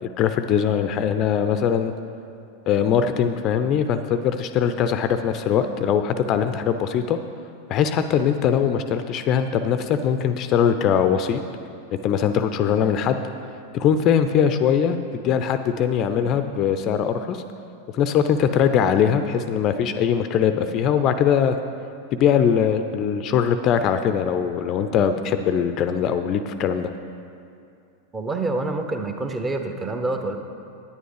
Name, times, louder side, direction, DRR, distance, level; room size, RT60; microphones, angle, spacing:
voice 1, 0.0-1.9 2.7-7.2 7.7-11.4 12.0-13.2 13.7-15.0 15.2-17.4 17.9-21.6 22.2-26.9, left 8 dB, 35° left, 9 dB, 0.5 m, -21 dB
voice 2, 28.1-30.4, right 2 dB, 15° right, 5 dB, 0.9 m, -27 dB
10.0 x 9.6 x 4.9 m, 2.5 s
figure-of-eight pair, 90°, 0 cm